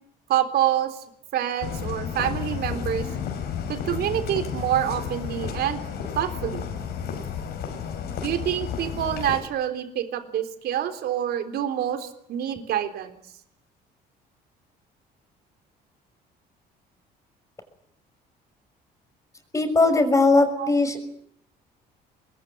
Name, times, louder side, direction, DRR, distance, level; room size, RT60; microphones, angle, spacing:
voice 1, 0.3-1.0 1.3-3.1 3.7-5.8 6.2-6.6 8.2-13.2 20.6-20.7, right 11 dB, 70° right, 8 dB, 3.7 m, -26 dB
sound 1, 1.6-9.4, left 7 dB, 75° left, 5.9 m, -32 dB
voice 2, 19.5-21.0, left 3 dB, 20° left, 8 dB, 6.0 m, -19 dB
24.0 x 22.0 x 9.2 m, 0.72 s
cardioid pair, 110°, 17 cm